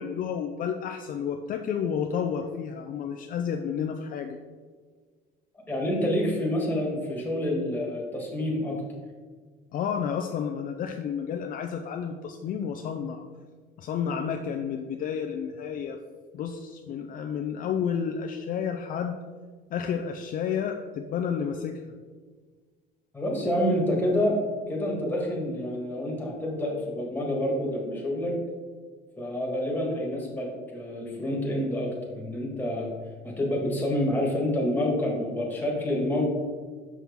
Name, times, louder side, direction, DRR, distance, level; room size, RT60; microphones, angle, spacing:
voice 1, 0.0-4.4 9.7-13.2 13.8-16.0 16.3-19.2 19.7-21.8, left 7 dB, 50° left, 5 dB, 0.4 m, -31 dB
voice 2, 5.7-8.8 23.1-24.4 24.7-28.3 29.2-30.5 30.7-32.9 33.2-36.2, left 1 dB, 10° left, -2 dB, 1.7 m, -28 dB
6.0 x 5.7 x 3.6 m, 1.5 s
cardioid pair, 125°, 18 cm